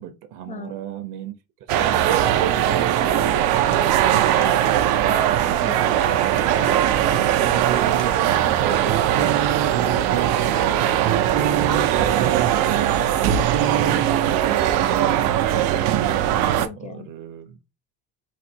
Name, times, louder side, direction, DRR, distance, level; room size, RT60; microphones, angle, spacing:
voice 1, 0.0-1.3 8.2-9.6 14.2-15.9 16.7-17.6, right 9 dB, 65° right, 0.9 m, -38 dB
sound 1, 1.7-16.7, right 11 dB, 90° right, 0.6 m, -20 dB
sound 2, 2.1-2.3 3.7-3.9 4.4-4.8 6.4-6.5 8.0-8.1, left 5 dB, 80° left, 1.2 m, -42 dB
voice 2, 5.0-6.0 13.9-14.3 16.6-17.1, left 6 dB, 25° left, 0.3 m, -37 dB
sound 3, 7.5-8.4 8.8-10.3 10.8-12.7 13.0-14.0, right 10 dB, 45° right, 0.5 m, -27 dB
4.3 x 2.6 x 4.3 m
cardioid pair, 135°, 34 cm